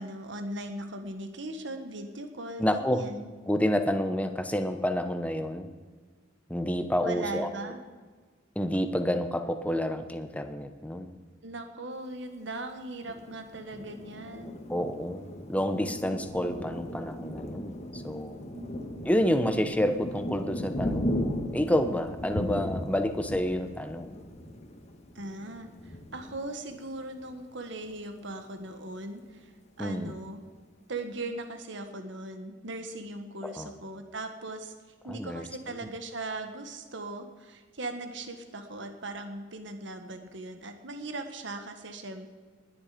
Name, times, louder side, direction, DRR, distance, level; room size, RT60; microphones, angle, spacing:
voice 1, 0.0-3.3 7.0-7.8 11.4-14.6 18.5-18.9 25.1-29.5 29.8-30.4 30.9-34.7 35.0-42.3, right 2 dB, 65° right, 7 dB, 1.6 m, -39 dB
voice 2, 2.6-3.1 3.5-5.7 6.5-7.7 8.6-11.1 14.7-18.4 19.0-24.2 29.8-30.1 33.4-33.7 35.1-35.4, equal, 5° left, 8 dB, 0.9 m, -29 dB
Thunder, 13.0-27.4 27.9-28.0 28.3-28.9, left 1 dB, 35° left, 1.5 m, -37 dB
20.0 x 10.5 x 5.1 m, 1.5 s
head